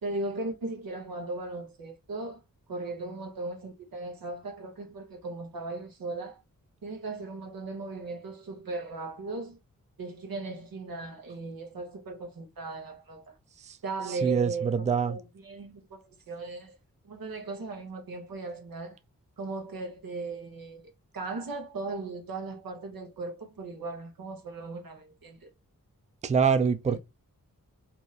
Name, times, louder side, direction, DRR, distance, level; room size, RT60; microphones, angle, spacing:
voice 1, 0.0-2.4 2.7-6.4 6.8-9.6 10.0-13.3 13.8-16.8 17.0-19.0 19.4-20.8 21.1-25.5 26.9-27.0, right 3 dB, 90° right, 1.1 m, -37 dB
voice 2, 14.1-15.2 26.2-27.0, right 6 dB, 20° right, 0.4 m, -25 dB
2.9 x 2.6 x 4.1 m
wide cardioid pair, 65°, 34 cm